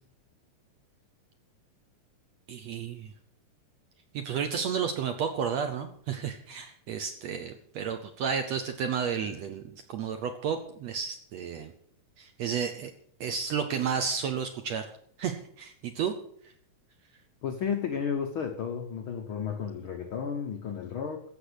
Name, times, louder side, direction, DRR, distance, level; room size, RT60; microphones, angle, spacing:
voice 1, 2.5-3.1 4.1-11.7 12.2-12.9 13.2-14.9 15.2-16.1, right 7 dB, 70° right, 7 dB, 1.6 m, -32 dB
voice 2, 17.4-21.2, left 7 dB, 85° left, 5 dB, 1.1 m, -33 dB
15.0 x 6.2 x 8.1 m, 0.62 s
omnidirectional pair, 4.0 m